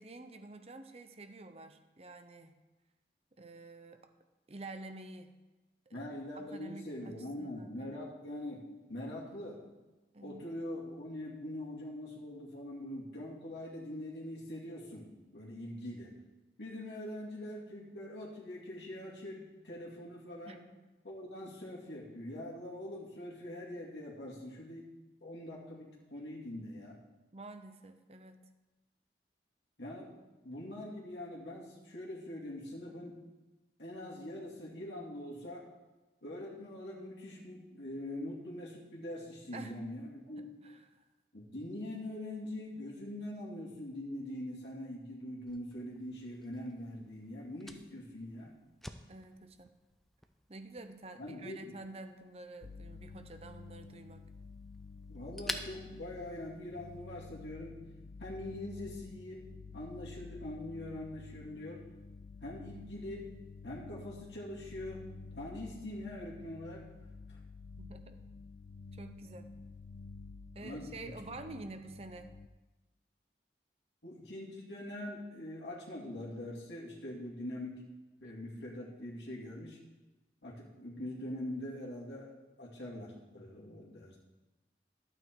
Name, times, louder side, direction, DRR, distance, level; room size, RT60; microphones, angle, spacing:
voice 1, 0.0-2.5 3.4-4.1 4.5-5.3 5.9-6.1 6.3-8.0 10.1-10.4 20.5-20.6 27.3-28.4 39.5-39.8 40.4-41.1 49.1-49.8 50.5-54.2 67.8-68.2 68.9-69.5 70.5-72.3, right 2 dB, 35° right, 8 dB, 0.7 m, -49 dB
voice 2, 5.9-9.6 10.2-15.1 15.3-16.1 16.6-20.6 21.0-24.9 25.2-27.0 29.8-30.1 30.4-33.2 33.8-35.6 36.2-40.5 41.3-48.5 51.2-51.7 55.1-57.8 58.2-59.5 59.7-61.8 62.4-63.3 63.6-65.0 65.3-66.8 67.3-67.4 70.6-71.1 74.0-77.8 78.2-79.8 80.4-82.3 82.6-84.2, left 1 dB, 85° left, -4 dB, 2.3 m, -43 dB
Fire, 45.5-57.0, equal, ahead, 0.5 m, -50 dB
sound 1, 52.6-72.5, left 4 dB, 55° left, 0.5 m, -50 dB
11.5 x 8.8 x 4.5 m, 1.1 s
head